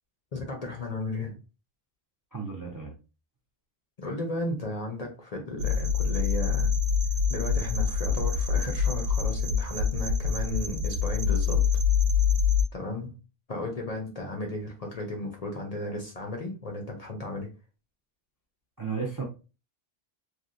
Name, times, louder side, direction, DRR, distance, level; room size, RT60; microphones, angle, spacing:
voice 1, 0.3-1.4 4.0-6.7 7.3-11.6 12.7-13.1 13.5-17.5, left 2 dB, 45° left, 1 dB, 0.6 m, -34 dB
voice 2, 2.3-2.9 18.8-19.2, right 5 dB, 30° right, 0 dB, 0.4 m, -33 dB
sound 1, 5.6-12.6, left 6 dB, 80° right, 0.9 m, -25 dB
3.2 x 2.4 x 2.5 m, 0.32 s
omnidirectional pair, 1.2 m